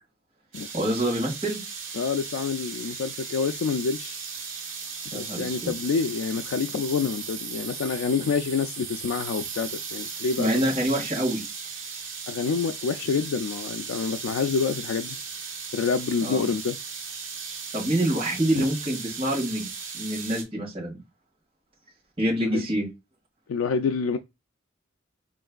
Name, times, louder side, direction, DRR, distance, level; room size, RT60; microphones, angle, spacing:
sound 1, 0.5-20.4, right 5 dB, 65° right, 1.2 m, -37 dB
voice 1, 0.7-1.6 5.1-5.7 10.4-11.4 16.2-16.5 17.7-19.7 19.9-21.0 22.2-22.9, right 1 dB, 30° right, 2.0 m, -26 dB
voice 2, 2.0-4.2 5.1-10.5 12.3-15.2 15.7-16.8 18.6-18.7 22.4-22.7 23.5-24.2, left 5 dB, 85° left, 0.3 m, -27 dB
4.4 x 3.1 x 2.3 m
head